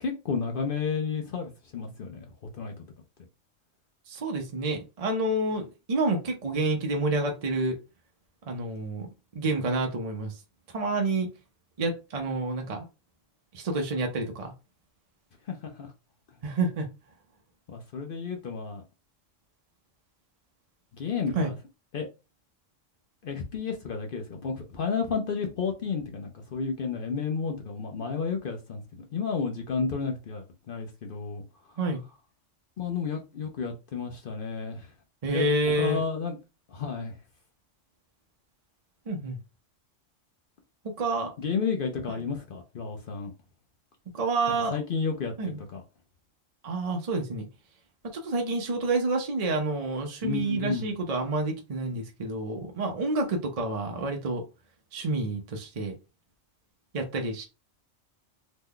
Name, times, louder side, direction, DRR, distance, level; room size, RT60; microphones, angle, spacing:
voice 1, 0.0-2.3 2.5-2.7 15.5-15.9 17.7-18.8 21.0-21.6 21.9-22.1 23.2-31.4 31.7-31.8 32.8-34.9 35.3-35.5 35.8-36.4 36.7-37.2 41.4-43.3 44.7-45.8 50.2-50.9, left 5 dB, 55° left, 0.6 m, -32 dB
voice 2, 4.1-7.8 8.5-9.1 9.3-10.4 10.7-11.3 11.8-12.8 13.5-14.5 16.4-16.9 21.3-21.5 31.8-32.0 35.2-36.0 39.1-39.4 41.0-41.3 44.1-44.7 45.4-45.6 46.6-47.5 48.0-54.4 54.9-55.9 56.9-57.4, right 2 dB, 45° right, 0.5 m, -28 dB
3.0 x 2.2 x 3.7 m
omnidirectional pair, 1.3 m